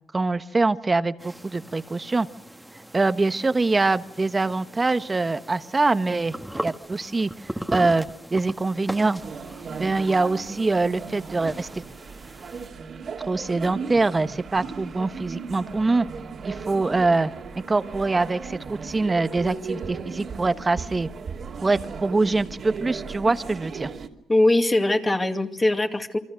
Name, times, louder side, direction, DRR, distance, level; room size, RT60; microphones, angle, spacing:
voice 1, 0.1-2.3 2.9-6.4 6.6-8.0 8.3-9.2 9.8-11.8 13.3-16.1 16.4-17.3 17.7-21.1 21.6-23.9, right 3 dB, 25° right, 11 dB, 1.2 m, -24 dB
Shoulder Grab, 1.2-12.7, right 1 dB, 5° right, 1.6 m, -39 dB
sound 1, 9.2-24.1, right 5 dB, 50° right, 2.7 m, -36 dB
voice 2, 24.3-26.2, left 2 dB, 20° left, 4 dB, 2.4 m, -21 dB
28.5 x 23.5 x 6.4 m, 0.71 s
cardioid pair, 90°, 0 cm